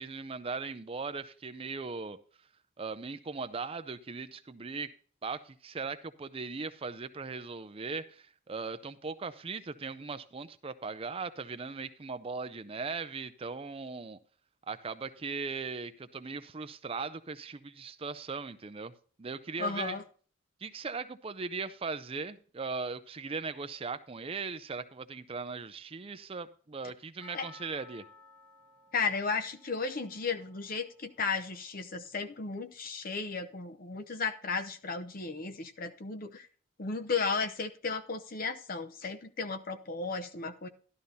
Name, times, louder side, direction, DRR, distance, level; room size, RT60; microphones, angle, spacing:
voice 1, 0.0-2.2 2.8-4.9 5.2-14.2 14.7-18.9 19.2-20.0 20.6-28.0, right 4 dB, 30° right, 12 dB, 0.5 m, -39 dB
voice 2, 19.6-20.0 27.3-27.5 28.9-36.5 36.8-40.7, left 4 dB, 45° left, 9 dB, 0.7 m, -34 dB
Percussion, 27.2-31.6 31.8-31.9, left 3 dB, 10° left, 1.7 m, -56 dB
12.5 x 11.5 x 2.7 m, 0.43 s
head